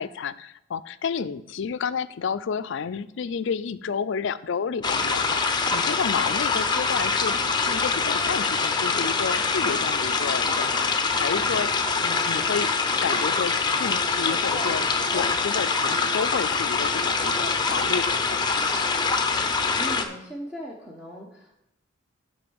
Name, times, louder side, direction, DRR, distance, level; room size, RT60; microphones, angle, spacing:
voice 1, 0.0-11.7 12.0-12.7 13.0-18.6, left 6 dB, 65° left, 15 dB, 0.4 m, -31 dB
sound 1, 4.8-20.0, left 4 dB, 20° left, 0.7 m, -24 dB
voice 2, 19.7-21.6, right 1 dB, 5° right, -3 dB, 1.0 m, -38 dB
6.6 x 5.5 x 7.0 m, 0.84 s
head